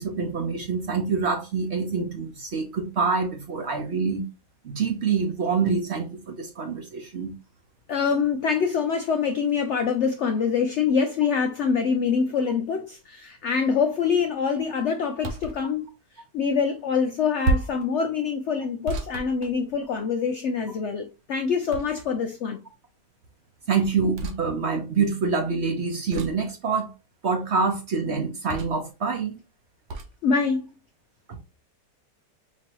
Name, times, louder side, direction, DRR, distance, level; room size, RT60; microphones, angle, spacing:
voice 1, 0.0-4.3 4.6-7.3 23.7-26.9 27.2-29.4, right 5 dB, 55° right, 0.8 m, -26 dB
voice 2, 7.9-15.8 16.3-22.6 30.2-30.7, left 6 dB, 80° left, 0.6 m, -25 dB
sound 1, 15.2-15.6 17.4-17.9 18.9-20.0 21.7-22.3 24.1-24.4 26.1-26.5 28.5-28.9 29.9-30.1, right 3 dB, 75° right, 1.3 m, -30 dB
4.5 x 3.0 x 2.9 m
omnidirectional pair, 1.8 m